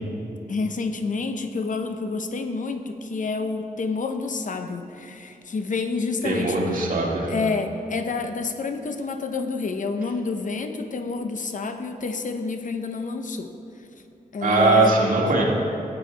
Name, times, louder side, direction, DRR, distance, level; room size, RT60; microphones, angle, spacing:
voice 1, 0.5-6.6 7.3-13.5 14.3-15.0, left 4 dB, 55° left, 7 dB, 0.7 m, -28 dB
voice 2, 6.2-7.3 14.4-15.4, right 2 dB, 60° right, -3 dB, 2.0 m, -20 dB
13.5 x 8.4 x 3.3 m, 2.8 s
wide cardioid pair, 85°, 16 cm